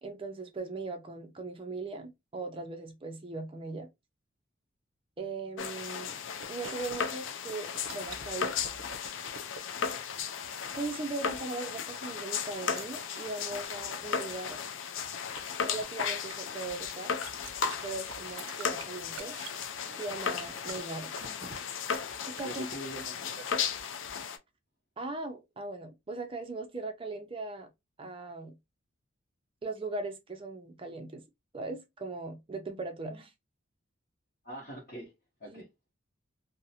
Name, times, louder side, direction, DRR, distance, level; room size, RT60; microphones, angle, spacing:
voice 1, 0.0-3.9 5.2-6.2 6.5-8.6 10.7-14.6 15.6-17.2 17.8-19.4 19.9-21.5 22.2-22.7 25.0-27.7 28.0-28.6 29.6-31.2 31.5-33.3 35.5-35.6, right 3 dB, 25° right, 0.4 m, -39 dB
sound 1, 5.6-24.4, left 6 dB, 65° left, 0.4 m, -35 dB
sound 2, 6.4-7.0 7.3-9.6 10.1-11.6 12.2-12.3 12.5-13.1 13.3-13.7 14.1-14.6 15.0-15.4 15.8-15.9 16.3-16.6 16.9-17.0 17.2-17.7 18.1-21.5 21.9-22.0 22.4-23.0, right 6 dB, 80° right, 0.5 m, -48 dB
voice 2, 22.4-23.7 34.4-35.1 35.4-35.6, right 1 dB, 40° left, 0.8 m, -43 dB
2.5 x 2.0 x 2.7 m
head